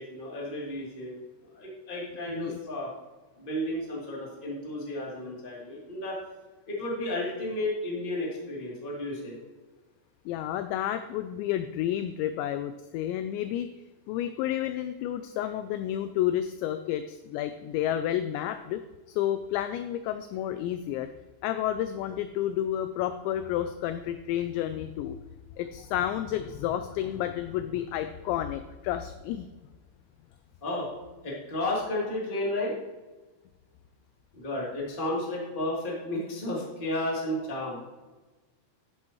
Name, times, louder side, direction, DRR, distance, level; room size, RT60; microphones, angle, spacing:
voice 1, 0.0-2.9 3.4-6.2 6.7-9.4 30.6-30.9 31.2-32.8 34.3-37.8, left 1 dB, 15° left, -5 dB, 2.0 m, -33 dB
voice 2, 2.2-2.6 10.3-13.7 14.1-18.8 19.1-21.1 21.4-25.2 25.6-29.5, left 11 dB, 85° left, 10 dB, 2.5 m, -30 dB
11.5 x 11.0 x 3.1 m, 1.2 s
omnidirectional pair, 5.6 m